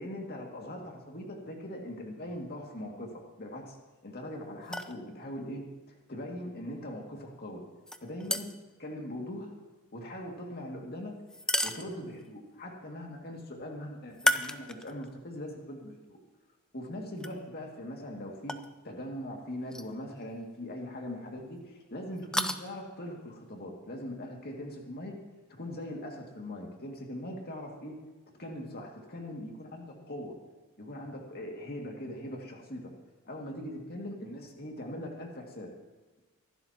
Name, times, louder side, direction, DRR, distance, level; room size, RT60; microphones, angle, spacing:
voice 1, 0.0-3.8 4.0-7.6 8.0-8.5 8.8-9.5 9.9-11.2 11.6-16.2 16.7-18.6 18.8-25.1 25.6-28.0 28.4-30.4 30.8-32.9 33.2-35.7, left 1 dB, 50° left, 0 dB, 2.3 m, -41 dB
sound 1, 4.6-5.0 7.9-8.7 11.3-12.3 14.1-15.1 15.6-15.7 17.2-17.3 18.5-18.7 19.7-19.9 20.2-20.3 22.2-22.6, left 1 dB, 5° left, 0.5 m, -32 dB
24.5 x 12.0 x 2.9 m, 1.2 s
head